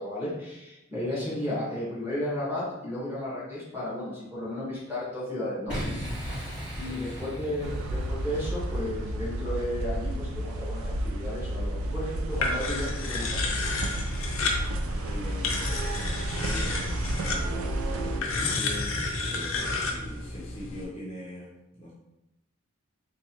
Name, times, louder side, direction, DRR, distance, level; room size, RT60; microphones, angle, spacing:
voice 1, 0.0-5.8 6.8-7.8 8.1-13.5, left 1 dB, 10° right, -8 dB, 1.3 m, -33 dB
Boom, 5.7-8.7, equal, 40° right, 1.5 m, -36 dB
voice 2, 6.8-7.8 14.1-21.9, left 1 dB, 25° left, -6 dB, 0.8 m, -43 dB
sound 1, 7.6-18.2, right 1 dB, 80° right, 0.4 m, -32 dB
sound 2, 12.3-20.8, left 3 dB, 80° left, 0.6 m, -31 dB
3.4 x 3.1 x 2.9 m, 0.90 s
head